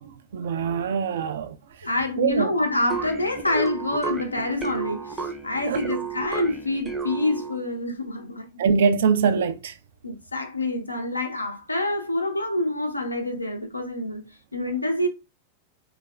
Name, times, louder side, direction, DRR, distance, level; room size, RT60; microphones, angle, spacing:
voice 1, 0.0-1.5 2.2-2.5 5.7-5.9 8.6-9.7, right 6 dB, 60° right, 0.3 m, -23 dB
voice 2, 1.8-8.5 10.0-15.1, left 2 dB, 85° left, 0.6 m, -27 dB
sound 1, 2.9-7.7, right 4 dB, 15° right, 0.6 m, -32 dB
3.4 x 2.3 x 2.2 m
figure-of-eight pair, 90°, 0 cm